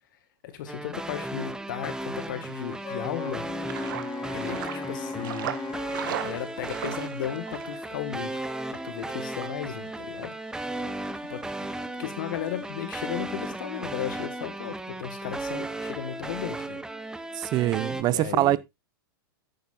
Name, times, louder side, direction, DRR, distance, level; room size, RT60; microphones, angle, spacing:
voice 1, 0.4-3.5 4.3-5.6 6.1-8.5 8.7-10.4 11.3-11.4 12.0-16.8 18.0-18.6, left 11 dB, 60° left, 1.8 m, -35 dB
sound 1, 0.7-18.0, right 2 dB, 5° right, 0.8 m, -35 dB
sound 2, 2.2-14.4, right 11 dB, 65° right, 1.5 m, -42 dB
Wind instrument woodwind instrument, 2.8-6.4, left 4 dB, 25° left, 1.7 m, -37 dB
voice 2, 17.3-18.6, right 15 dB, 35° right, 0.6 m, -24 dB
10.0 x 9.0 x 2.5 m
hypercardioid pair, 110°, 12 cm